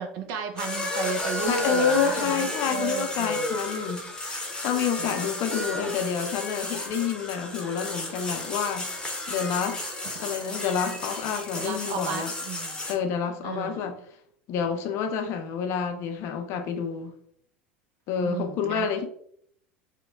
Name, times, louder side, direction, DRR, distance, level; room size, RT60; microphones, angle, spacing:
voice 1, 0.0-3.5 5.0-5.3 11.5-12.8 13.4-13.9 18.2-19.0, right 5 dB, 55° right, 0.6 m, -34 dB
sound 1, 0.6-12.9, left 1 dB, 10° left, 0.8 m, -32 dB
voice 2, 1.5-8.9 9.3-9.8 10.2-12.3 12.9-14.0 14.5-17.1 18.1-19.0, left 7 dB, 50° left, 0.5 m, -28 dB
3.0 x 2.1 x 3.5 m
hypercardioid pair, 80°, 6 cm